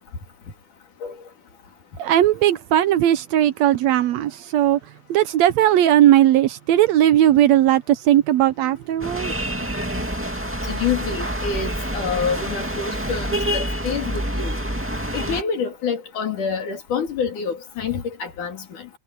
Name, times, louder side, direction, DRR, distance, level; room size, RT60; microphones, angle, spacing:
voice 1, 2.0-4.8 5.1-9.3, right 12 dB, 75° right, 1.8 m, -17 dB
sound 1, 9.0-15.4, equal, 5° right, 1.6 m, -27 dB
voice 2, 10.6-14.6 15.1-18.9, left 6 dB, 80° left, 4.7 m, -27 dB
omnidirectional pair, 3.5 m